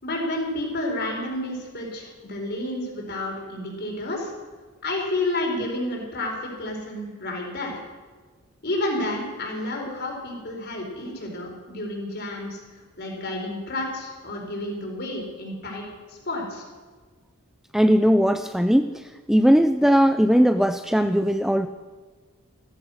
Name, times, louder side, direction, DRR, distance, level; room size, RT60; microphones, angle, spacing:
voice 1, 0.0-4.3 4.8-7.8 8.6-12.6 13.0-16.6, left 1 dB, 50° left, 0 dB, 4.7 m, -30 dB
voice 2, 17.7-18.9 19.3-21.7, equal, ahead, 9 dB, 0.4 m, -19 dB
15.5 x 14.0 x 6.5 m, 1.4 s
head